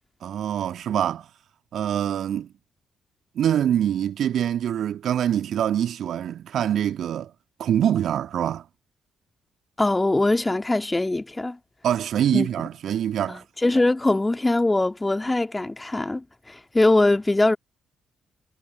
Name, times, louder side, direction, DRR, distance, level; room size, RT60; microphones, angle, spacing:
voice 1, 0.2-1.3 1.7-2.5 3.3-7.3 7.6-8.6 11.8-13.4, right 10 dB, 60° right, 1.7 m, -24 dB
voice 2, 9.8-11.6 12.3-12.5 13.3-17.6, left 2 dB, 20° left, 1.7 m, -22 dB
figure-of-eight pair, 40°, 0 cm